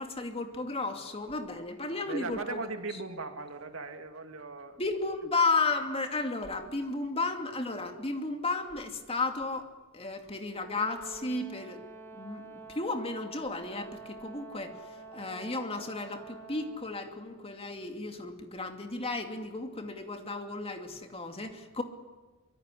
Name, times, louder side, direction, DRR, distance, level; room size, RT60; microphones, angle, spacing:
voice 1, 0.0-2.6 4.8-9.7 9.9-11.8 12.1-21.8, left 3 dB, 30° left, 5 dB, 2.6 m, -33 dB
voice 2, 1.9-4.8, right 3 dB, 80° right, 6 dB, 2.6 m, -39 dB
Brass instrument, 10.5-16.9, right 3 dB, 10° left, 6.2 m, -48 dB
24.5 x 23.0 x 10.0 m, 1.2 s
head